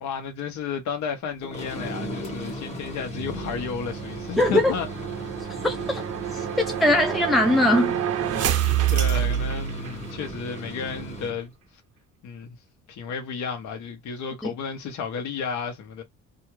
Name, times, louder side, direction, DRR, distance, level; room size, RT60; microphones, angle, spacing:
voice 1, 0.0-4.9 8.9-11.5 12.2-12.5 12.9-16.0, left 6 dB, 70° left, 1.1 m, -32 dB
sound 1, 1.4-11.4, right 2 dB, 20° left, 1.2 m, -36 dB
sound 2, 3.5-10.3, right 10 dB, 55° right, 0.6 m, -28 dB
voice 2, 4.4-4.7 5.6-6.0 6.3-8.0 14.4-14.5, left 1 dB, ahead, 0.5 m, -21 dB
2.7 x 2.4 x 3.1 m
cardioid pair, 120°, 30 cm